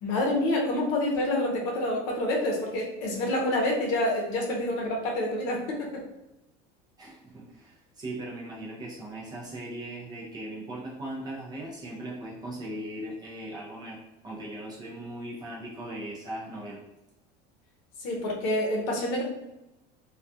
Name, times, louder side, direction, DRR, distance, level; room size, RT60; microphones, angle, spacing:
voice 1, 0.0-5.9 18.0-19.2, left 1 dB, 60° left, -1 dB, 0.7 m, -27 dB
voice 2, 7.0-16.8, right 1 dB, 20° right, -4 dB, 0.4 m, -39 dB
2.2 x 2.2 x 2.6 m, 0.93 s
cardioid pair, 165°, 20 cm